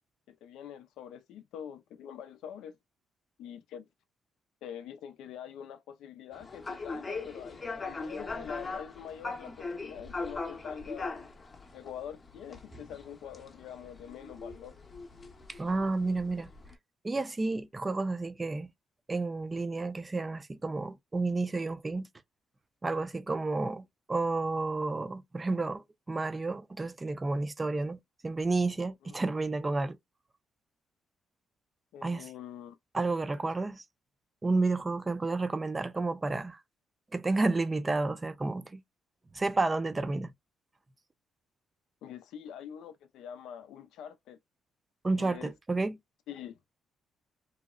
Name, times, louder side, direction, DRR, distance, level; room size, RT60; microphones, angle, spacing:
voice 1, 0.3-2.8 3.4-3.9 4.6-11.3 11.7-14.8 29.0-29.1 31.9-32.7 42.0-44.4 45.2-45.5 46.3-46.6, left 9 dB, 85° left, 0.4 m, -45 dB
sound 1, 6.3-16.7, left 3 dB, 30° left, 0.7 m, -41 dB
voice 2, 15.5-16.5 17.0-18.7 19.1-22.1 22.8-28.0 28.2-30.0 32.0-32.2 32.9-33.8 34.4-36.6 37.1-38.8 39.3-40.3 45.0-46.0, right 3 dB, 25° right, 0.4 m, -31 dB
2.7 x 2.0 x 2.3 m
cardioid pair, 90°, 0 cm